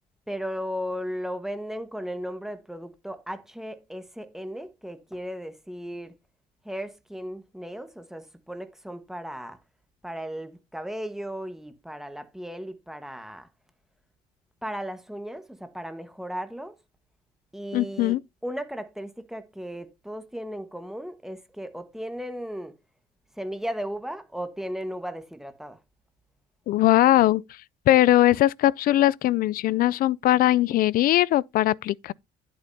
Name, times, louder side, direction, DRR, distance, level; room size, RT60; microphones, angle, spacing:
voice 1, 0.3-6.1 6.6-9.6 10.0-13.5 14.6-16.8 17.5-22.7 23.3-25.8, equal, ahead, 1.3 m, -36 dB
voice 2, 17.7-18.2 26.7-27.4 27.9-32.1, left 14 dB, 60° left, 0.4 m, -20 dB
10.5 x 8.4 x 2.7 m
cardioid pair, 110°, 17 cm